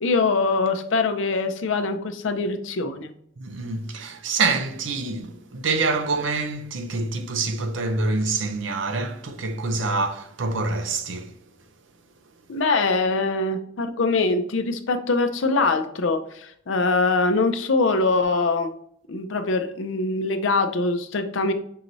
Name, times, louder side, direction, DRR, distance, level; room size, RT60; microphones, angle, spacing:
voice 1, 0.0-3.1 12.5-18.7 19.1-21.5, left 3 dB, 85° left, 0.5 m, -23 dB
voice 2, 3.4-11.4, right 3 dB, 85° right, 0.6 m, -26 dB
5.5 x 2.6 x 3.0 m
head